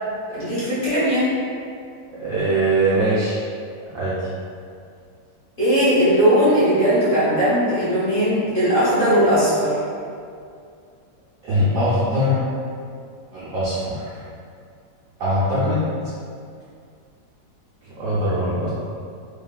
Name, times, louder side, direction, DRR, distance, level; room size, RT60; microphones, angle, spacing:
voice 1, 0.3-1.3 5.6-9.7, equal, 45° left, -12 dB, 0.7 m, -18 dB
voice 2, 2.2-3.4 3.9-4.2 11.4-12.4 13.3-14.0 15.2-15.9 17.8-18.7, equal, 80° right, -10 dB, 0.7 m, -21 dB
3.1 x 2.4 x 2.2 m, 2.3 s
omnidirectional pair, 2.0 m